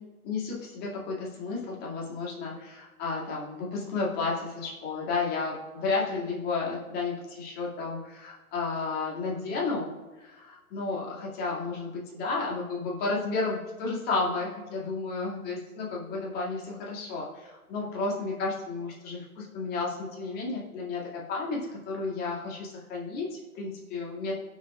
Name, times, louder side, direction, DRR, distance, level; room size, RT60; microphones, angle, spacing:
voice 1, 0.2-9.9 10.2-24.3, left 3 dB, 20° left, -3 dB, 2.1 m, -32 dB
18.5 x 6.3 x 2.3 m, 1.2 s
figure-of-eight pair, 125°, 44 cm